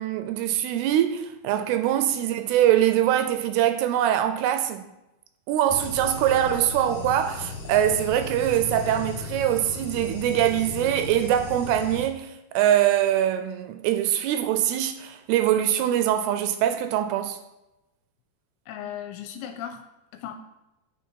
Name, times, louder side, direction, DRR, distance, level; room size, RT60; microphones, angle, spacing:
voice 1, 0.0-4.8 5.5-17.4, right 11 dB, 85° right, 2.5 m, -23 dB
sound 1, 5.7-12.1, left 4 dB, 60° left, 1.8 m, -36 dB
voice 2, 18.7-19.8 20.1-20.3, left 10 dB, 80° left, 2.4 m, -37 dB
9.3 x 4.2 x 4.4 m
omnidirectional pair, 4.7 m